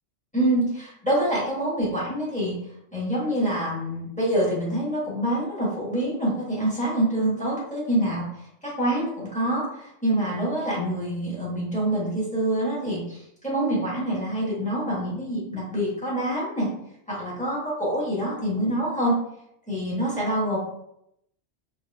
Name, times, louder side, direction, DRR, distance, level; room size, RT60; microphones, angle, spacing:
voice 1, 0.3-2.6 2.9-8.3 8.6-16.7 17.1-19.1 19.7-20.6, right 1 dB, 5° left, -7 dB, 1.1 m, -26 dB
4.6 x 2.3 x 2.2 m, 0.79 s
omnidirectional pair, 1.2 m